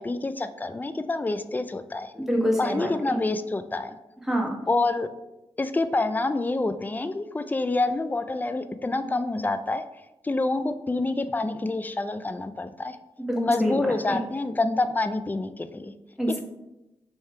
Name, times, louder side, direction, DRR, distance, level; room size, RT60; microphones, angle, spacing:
voice 1, 0.0-2.1 2.6-4.0 4.7-5.1 5.6-9.8 10.2-13.0 13.4-15.9, left 2 dB, 15° left, 10 dB, 0.3 m, -27 dB
voice 2, 2.1-2.9 4.2-4.5 13.2-13.8 14.1-14.2 16.2-16.4, equal, 5° right, -1 dB, 1.3 m, -26 dB
3.3 x 2.7 x 4.5 m, 0.94 s
cardioid pair, 40°, 11 cm